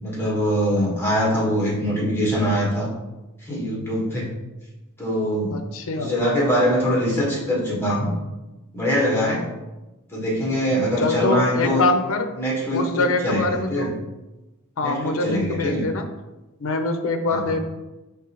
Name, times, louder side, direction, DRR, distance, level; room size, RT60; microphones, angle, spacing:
voice 1, 0.0-2.9 3.4-4.3 5.0-5.6 5.9-8.1 8.7-9.5 10.1-11.9 12.4-13.9 14.8-15.9 17.3-17.4, equal, 10° left, -5 dB, 1.4 m, -23 dB
voice 2, 5.5-6.2 11.0-12.3 12.7-13.9 14.8-16.1 16.6-17.6, left 3 dB, 65° left, 7 dB, 0.5 m, -24 dB
4.8 x 3.3 x 3.0 m, 1.0 s
head